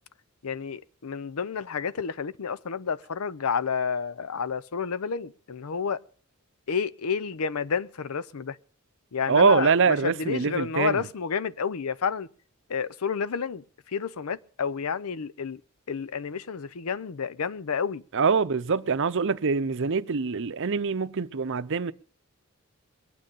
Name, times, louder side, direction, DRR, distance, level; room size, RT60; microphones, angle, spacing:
voice 1, 0.4-6.0 6.7-8.6 9.1-12.3 12.7-13.6 13.9-15.6 15.9-18.0, left 6 dB, 80° left, 0.6 m, -30 dB
voice 2, 9.3-11.0 18.1-21.9, right 5 dB, 60° right, 0.7 m, -24 dB
22.5 x 9.2 x 5.5 m
head